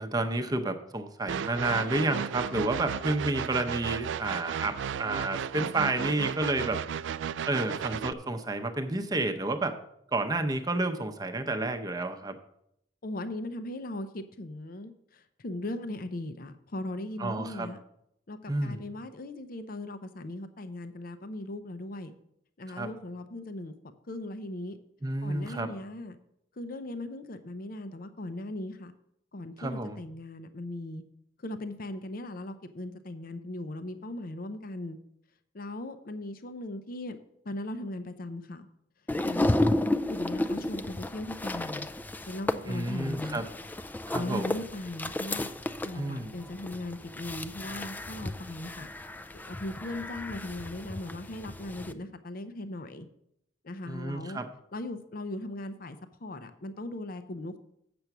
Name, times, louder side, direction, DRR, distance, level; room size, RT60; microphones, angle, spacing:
voice 1, 0.0-6.8 7.5-9.7 10.1-12.4 17.2-17.7 18.5-18.8 22.7-22.9 25.0-25.7 29.6-30.0 42.7-43.4 44.1-44.5 45.9-46.3 53.9-54.5, right 2 dB, 20° right, 6 dB, 0.7 m, -30 dB
sound 1, 1.3-8.1, right 8 dB, 80° right, 0.3 m, -34 dB
voice 2, 13.0-17.8 18.3-22.1 22.6-23.7 24.1-24.8 25.2-26.2 26.6-28.9 29.3-31.0 31.4-35.0 35.5-37.2 37.4-38.7 39.2-39.8 40.1-41.9 42.3-43.4 44.1-45.5 45.8-48.9 49.3-53.1 53.6-54.4 54.7-57.6, left 1 dB, 50° left, 10 dB, 0.6 m, -38 dB
sound 2, 39.1-51.9, left 1 dB, 10° left, 0.3 m, -33 dB
7.8 x 6.9 x 6.0 m, 0.76 s
head